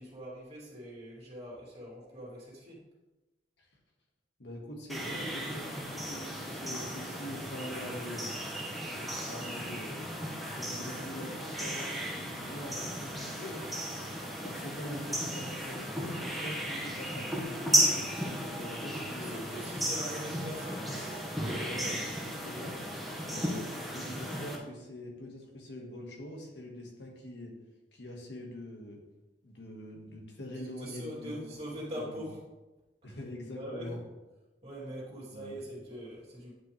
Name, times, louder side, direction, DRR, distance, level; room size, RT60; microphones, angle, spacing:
voice 1, 0.0-2.8 19.2-20.9 30.8-32.4 33.0-33.2 33.5-33.9 34.6-36.6, equal, 35° right, -5 dB, 2.9 m, -42 dB
voice 2, 4.4-8.6 8.9-13.7 14.4-19.5 20.4-20.5 21.5-22.8 23.2-27.6 27.9-29.0 29.4-31.3 31.9-32.2 33.0-34.0 35.3-35.6, left 1 dB, 75° left, 0 dB, 1.6 m, -44 dB
sound 1, 4.9-24.6, equal, ahead, 1.4 m, -35 dB
9.7 x 5.5 x 3.3 m, 1.1 s
head